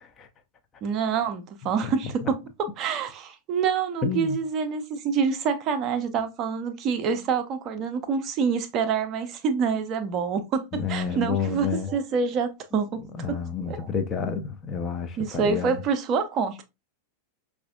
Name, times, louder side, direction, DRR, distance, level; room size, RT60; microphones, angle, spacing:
voice 1, 0.8-2.4 2.8-13.4 13.7-13.8 15.2-16.6, right 6 dB, 35° right, 0.5 m, -26 dB
voice 2, 4.0-4.4 10.7-11.9 13.0-15.8, left 6 dB, 25° left, 0.5 m, -30 dB
4.8 x 2.4 x 2.2 m
figure-of-eight pair, 90°, 0 cm